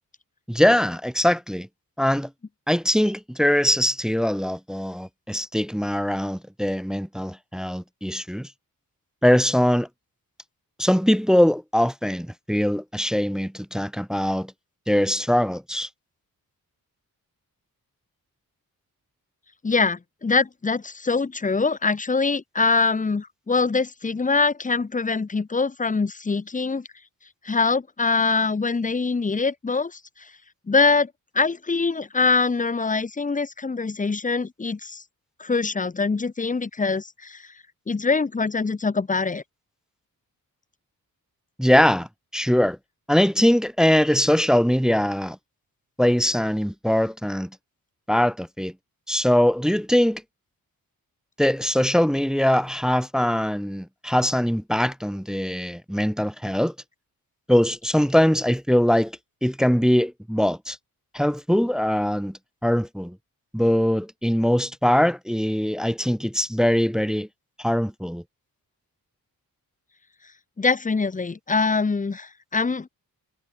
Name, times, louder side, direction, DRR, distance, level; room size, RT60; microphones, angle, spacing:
voice 1, 0.5-1.7 2.0-2.3 2.7-8.5 9.2-9.9 10.8-14.5 14.9-15.9 41.6-42.8 43.1-45.4 46.0-47.5 48.1-48.7 49.1-50.2 51.4-56.7 57.5-60.8 61.1-63.2 63.5-67.3 67.6-68.2, equal, ahead, 0.4 m, -22 dB
voice 2, 19.6-26.9 27.4-30.3 30.7-35.0 35.4-37.5 37.9-39.4 70.6-72.9, left 4 dB, 20° left, 0.7 m, -23 dB
wide cardioid pair, 120°, 36 cm